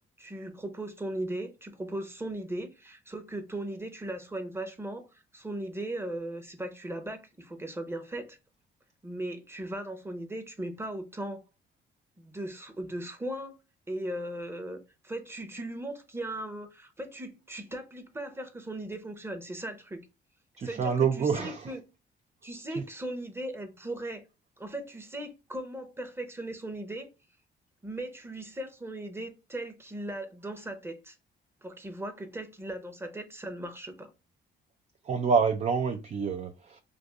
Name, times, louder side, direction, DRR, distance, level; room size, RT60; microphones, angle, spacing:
voice 1, 0.0-8.4 9.0-11.4 12.2-13.6 13.9-20.0 20.6-21.8 22.4-24.2 24.6-27.1 27.8-31.2 31.6-34.1, right 1 dB, 10° right, 0.8 m, -38 dB
voice 2, 20.6-21.7 22.7-22.8 35.0-36.8, right 6 dB, 35° right, 0.4 m, -27 dB
2.6 x 2.5 x 3.3 m
cardioid pair, 90°, 20 cm